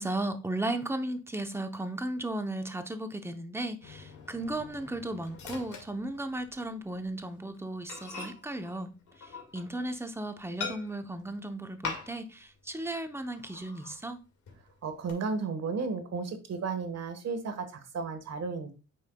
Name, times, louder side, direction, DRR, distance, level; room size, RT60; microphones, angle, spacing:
voice 1, 0.0-8.9 9.2-14.2, right 1 dB, 10° right, 0.7 m, -35 dB
Microwave oven, 3.8-6.7 7.0-7.2 7.5-7.6 7.9-10.0 10.6-11.2 11.8-12.4 12.7-12.8 13.3-14.0 14.5-15.1, left 5 dB, 80° left, 1.9 m, -43 dB
voice 2, 14.8-18.7, right 4 dB, 60° right, 1.4 m, -33 dB
8.8 x 5.5 x 2.2 m
cardioid pair, 135°, 30 cm